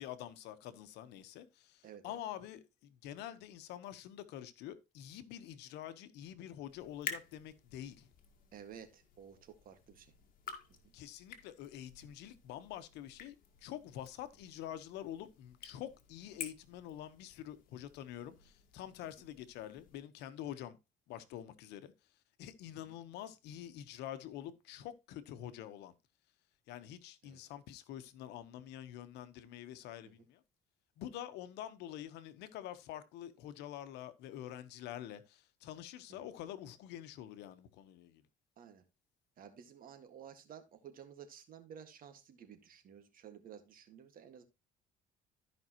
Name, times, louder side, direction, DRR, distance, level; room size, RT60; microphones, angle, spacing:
voice 1, 0.0-8.1 10.9-20.8 21.1-21.9 22.4-26.0 26.7-30.4 31.0-38.2, left 11 dB, 90° left, 1.1 m, -47 dB
voice 2, 1.8-2.2 8.5-10.1 10.8-10.9 19.0-19.1 27.2-27.4 30.0-30.1 36.1-36.3 38.6-38.8 39.4-44.4, right 8 dB, 55° right, 1.8 m, -53 dB
sound 1, 6.7-20.0, left 7 dB, 55° left, 1.9 m, -51 dB
13.5 x 5.3 x 3.0 m
cardioid pair, 110°, 17 cm